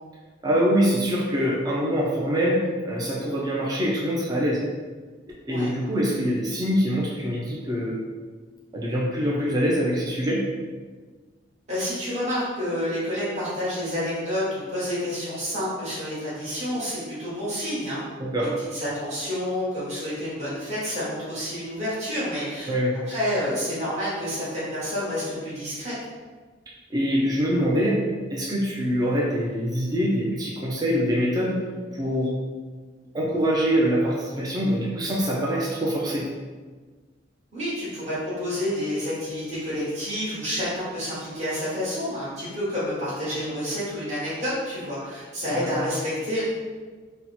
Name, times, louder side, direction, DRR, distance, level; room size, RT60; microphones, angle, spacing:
voice 1, 0.4-4.6 5.5-8.0 8.7-10.5 18.2-18.5 22.7-23.0 26.9-28.0 28.3-31.6 31.9-32.3 33.1-36.3 45.5-45.8, equal, 20° right, -4 dB, 0.4 m, -24 dB
voice 2, 11.7-18.0 18.4-22.7 23.1-25.9 37.5-46.4, left 1 dB, 35° right, -10 dB, 1.2 m, -29 dB
2.9 x 2.1 x 4.1 m, 1.4 s
head